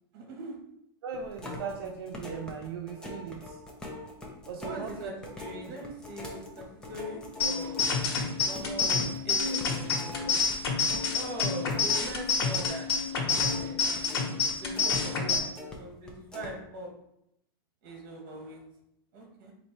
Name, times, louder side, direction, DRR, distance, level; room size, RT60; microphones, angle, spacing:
voice 1, 0.1-0.6 4.6-7.8 8.4-10.4 11.1-12.9 13.2-16.9 17.8-18.6 19.1-19.5, right 1 dB, 45° right, 1 dB, 1.3 m, -42 dB
voice 2, 1.0-3.6 4.5-5.1 5.7-5.8 15.2-15.5 16.4-16.5, right 6 dB, 75° right, 1 dB, 0.6 m, -39 dB
sound 1, 1.1-12.8 13.0-15.8 16.1-16.5, left 2 dB, 5° left, 0.5 m, -43 dB
sound 2, 7.4-15.4, left 4 dB, 90° left, 1.2 m, -28 dB
4.2 x 2.6 x 4.5 m, 0.78 s
supercardioid pair, 165°, 13 cm